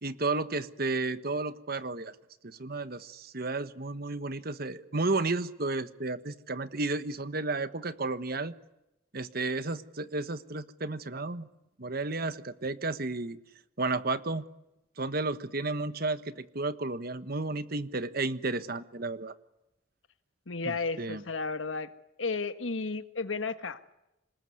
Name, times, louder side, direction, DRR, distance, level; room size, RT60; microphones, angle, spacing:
voice 1, 0.0-2.1 2.4-8.5 9.1-11.5 11.8-13.4 13.8-14.4 15.0-19.3 20.6-21.2, right 3 dB, 50° right, 12 dB, 1.4 m, -32 dB
voice 2, 20.5-21.9 22.2-23.9, left 4 dB, 85° left, 10 dB, 1.6 m, -33 dB
26.5 x 20.0 x 9.5 m, 0.90 s
head